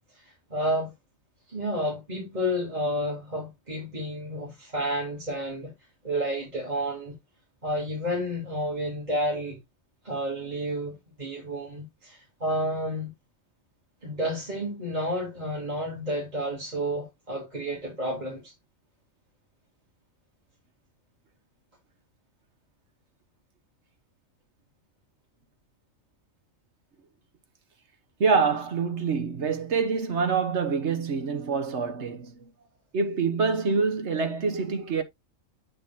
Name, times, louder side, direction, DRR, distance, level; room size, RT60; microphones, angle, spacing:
voice 1, 0.5-0.9 1.5-5.7 6.0-7.1 7.6-9.6 10.0-13.1 14.0-18.5, equal, 30° right, 3.3 m, -30 dB
voice 2, 28.2-32.5 32.9-35.0, right 5 dB, 60° right, 1.3 m, -26 dB
9.1 x 5.3 x 2.7 m
omnidirectional pair, 1.3 m